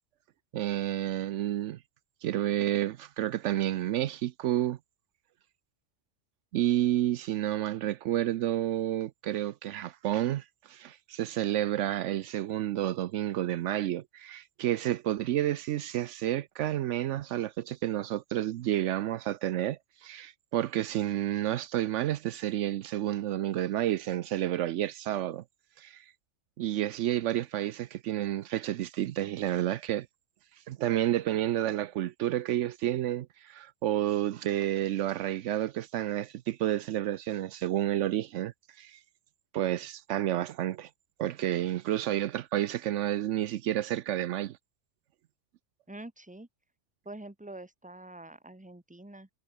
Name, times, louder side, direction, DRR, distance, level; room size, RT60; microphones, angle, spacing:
voice 1, 0.5-1.8 2.2-4.8 6.5-25.4 25.8-26.0 26.6-30.1 30.7-39.0 39.5-40.9 41.2-44.6, right 13 dB, 80° right, 0.9 m, -30 dB
voice 2, 45.9-46.5 47.0-49.3, right 2 dB, 5° right, 1.5 m, -45 dB
omnidirectional pair, 1.3 m